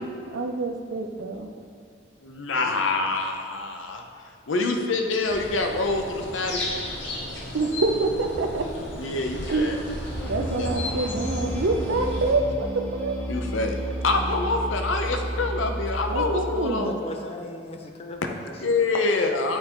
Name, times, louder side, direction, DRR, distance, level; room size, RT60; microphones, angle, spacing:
voice 1, 0.0-1.5 7.5-8.7 9.5-9.8 10.2-12.7 12.9-13.2 16.1-17.0, right 3 dB, 80° right, 5 dB, 0.5 m, -26 dB
voice 2, 2.2-4.0 4.5-6.8 9.0-9.8 10.4-10.7 13.3-13.8 14.0-17.0 18.6-19.6, left 3 dB, 90° left, 4 dB, 0.7 m, -26 dB
sound 1, 5.2-12.3, left 1 dB, 70° left, 1.1 m, -33 dB
sound 2, 10.1-16.6, right 1 dB, 5° left, 0.9 m, -32 dB
voice 3, 16.8-18.8 19.0-19.1, left 2 dB, 30° left, 4 dB, 0.5 m, -39 dB
9.1 x 3.8 x 4.4 m, 2.2 s
head